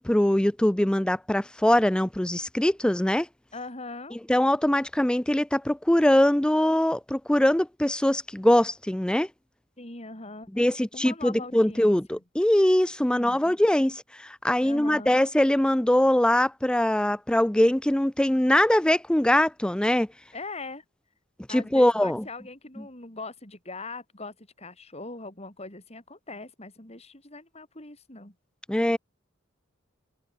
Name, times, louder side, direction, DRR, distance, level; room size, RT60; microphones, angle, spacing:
voice 1, 0.0-3.3 4.3-9.3 10.5-20.1 21.5-22.2 28.7-29.0, left 1 dB, 5° left, 0.4 m, -22 dB
voice 2, 3.5-4.2 9.8-12.0 13.1-13.6 14.6-15.2 20.3-20.8 21.5-28.3, left 3 dB, 30° left, 5.9 m, -41 dB
open air
head